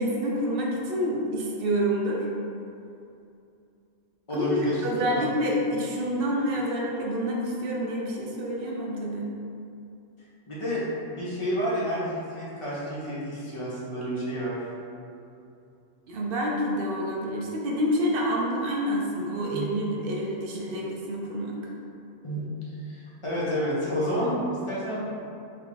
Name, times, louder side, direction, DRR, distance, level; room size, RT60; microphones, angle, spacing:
voice 1, 0.0-2.3 4.3-4.5 4.8-9.3 16.1-21.6, equal, 60° right, -2 dB, 0.6 m, -28 dB
voice 2, 4.3-4.8 5.1-5.3 10.5-14.6 19.5-19.7 22.2-22.4 22.8-25.0, equal, 35° left, -8 dB, 0.6 m, -30 dB
3.3 x 2.3 x 3.8 m, 2.6 s
omnidirectional pair, 1.3 m